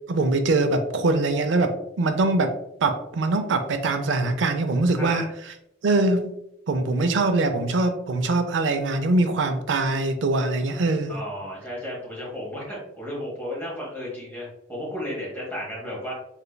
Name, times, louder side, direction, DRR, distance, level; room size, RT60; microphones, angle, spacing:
voice 1, 0.1-2.6 2.8-5.3 5.8-6.3 6.7-11.2, right 2 dB, 70° right, 8 dB, 0.4 m, -23 dB
voice 2, 4.9-5.3 11.1-16.1, equal, 10° left, -5 dB, 1.3 m, -33 dB
3.4 x 3.2 x 2.2 m, 0.80 s
head